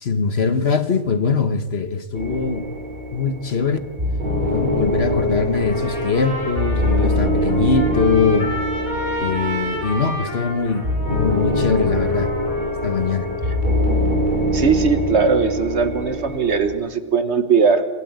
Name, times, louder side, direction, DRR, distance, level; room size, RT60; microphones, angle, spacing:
voice 1, 0.0-2.7 3.1-3.8 4.4-8.5 9.2-12.3 12.8-13.3, left 5 dB, 50° left, 1.3 m, -22 dB
sound 1, 2.2-16.8, equal, 30° right, 4.6 m, -23 dB
Trumpet, 5.5-13.6, equal, 75° left, 7.5 m, -32 dB
voice 2, 14.5-17.9, right 5 dB, 50° right, 1.4 m, -19 dB
26.5 x 13.0 x 9.4 m
omnidirectional pair, 1.5 m